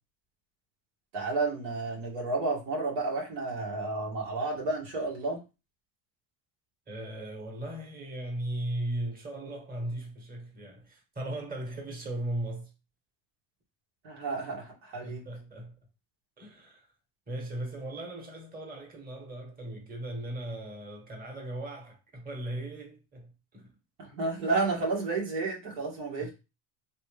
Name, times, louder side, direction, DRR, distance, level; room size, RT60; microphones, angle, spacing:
voice 1, 1.1-5.4 14.0-15.2 24.0-26.3, right 3 dB, 85° right, 1.7 m, -31 dB
voice 2, 6.9-12.7 15.0-15.7 16.4-16.9 17.3-23.7 26.2-26.3, right 1 dB, 20° right, 1.2 m, -37 dB
3.2 x 2.7 x 3.3 m
supercardioid pair, 100°, 46 cm